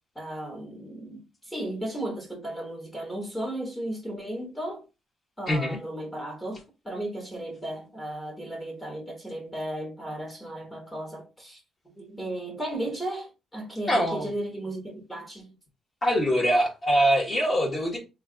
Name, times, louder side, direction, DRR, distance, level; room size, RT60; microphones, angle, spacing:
voice 1, 0.1-4.8 5.4-6.6 6.8-11.6 11.9-15.5, right 1 dB, 10° left, 1.1 m, -35 dB
voice 2, 5.5-5.8 13.9-14.3 16.0-18.0, equal, 30° left, 1.4 m, -23 dB
3.2 x 2.5 x 3.8 m
cardioid pair, 135°, 0 cm